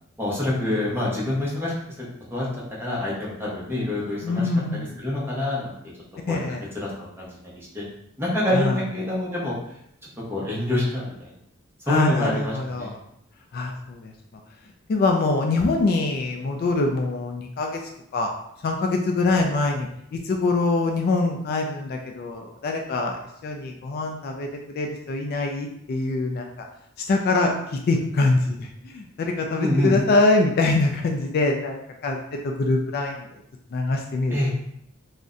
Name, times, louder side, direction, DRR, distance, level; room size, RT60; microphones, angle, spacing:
voice 1, 0.2-1.7 2.3-2.5 2.8-5.7 6.3-6.4 6.7-7.8 8.2-9.6 10.3-11.3 11.9-12.9 29.6-29.9 34.3-34.5, left 1 dB, 10° right, -5 dB, 0.8 m, -26 dB
voice 2, 4.2-5.0 6.3-6.6 8.5-8.8 11.9-12.9 13.5-14.1 14.9-17.8 18.1-18.3 18.6-23.2 23.4-24.5 24.7-26.7 27.1-32.2 32.4-33.3 33.7-34.4, left 3 dB, 50° left, 3 dB, 0.3 m, -24 dB
2.6 x 2.1 x 3.6 m, 0.74 s
head